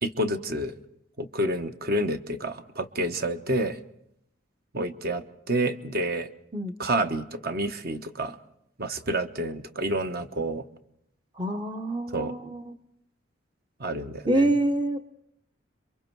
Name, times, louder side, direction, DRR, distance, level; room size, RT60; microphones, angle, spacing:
voice 1, 0.0-0.7 1.2-3.8 4.7-6.3 6.8-8.4 8.8-10.6 12.1-12.3 13.8-14.5, right 1 dB, 50° right, 8 dB, 1.1 m, -29 dB
voice 2, 11.4-12.7 14.3-15.0, right 1 dB, 20° right, 7 dB, 0.8 m, -26 dB
27.0 x 23.5 x 4.6 m, 0.77 s
head